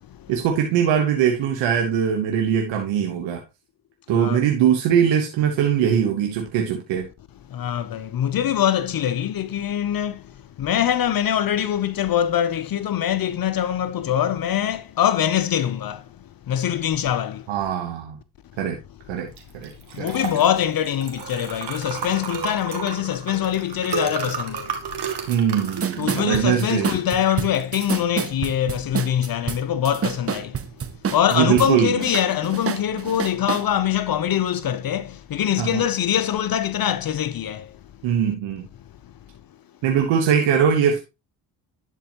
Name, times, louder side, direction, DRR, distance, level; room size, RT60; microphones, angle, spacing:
voice 1, 0.3-3.4 4.1-7.1 17.5-18.2 18.6-18.8 19.1-19.7 20.0-20.2 25.3-26.9 31.3-32.0 35.6-35.9 38.0-38.7 39.8-41.0, right 8 dB, 80° right, 1.2 m, -21 dB
voice 2, 7.5-17.5 19.9-24.7 26.0-30.6 31.1-37.8 39.0-39.1, left 10 dB, 50° left, 0.7 m, -23 dB
Liquid, 19.3-29.5, right 7 dB, 60° right, 1.9 m, -34 dB
sound 1, 25.3-25.4 25.6-31.7 32.0-33.7, right 7 dB, 30° right, 0.7 m, -28 dB
11.0 x 4.5 x 2.9 m
supercardioid pair, 50°, 45 cm